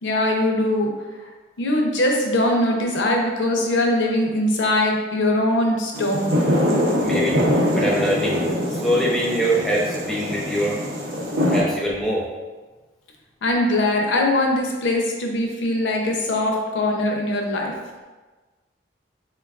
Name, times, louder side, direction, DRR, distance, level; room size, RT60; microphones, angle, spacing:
voice 1, 0.0-0.9 1.6-6.3 13.4-17.7, left 1 dB, 75° left, 1 dB, 0.5 m, -21 dB
sound 1, 5.9-11.6, equal, 80° right, 0.6 m, -23 dB
voice 2, 7.0-7.4 7.7-8.4 8.8-10.8 11.5-12.2, right 1 dB, ahead, -4 dB, 0.5 m, -23 dB
4.5 x 2.3 x 2.3 m, 1.3 s
head